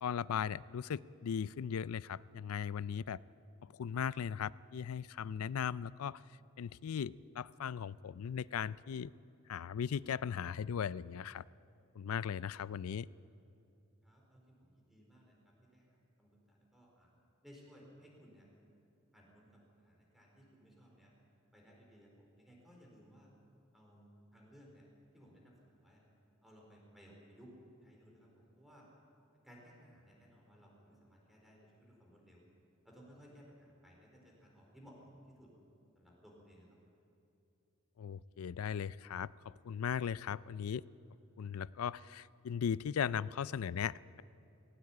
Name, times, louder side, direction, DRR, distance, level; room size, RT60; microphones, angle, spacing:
voice 1, 0.0-3.2 3.6-6.2 6.6-9.1 9.5-11.4 12.0-13.1 38.0-40.8 41.4-44.2, left 7 dB, 90° left, 20 dB, 0.4 m, -38 dB
voice 2, 14.0-17.1 17.4-18.5 19.1-19.5 19.8-21.1 21.5-23.3 23.7-24.8 25.1-26.0 26.4-27.5 27.8-28.9 29.4-32.4 32.8-35.5 36.0-36.8, equal, ahead, -2 dB, 4.3 m, -60 dB
18.0 x 17.5 x 8.7 m, 2.7 s
head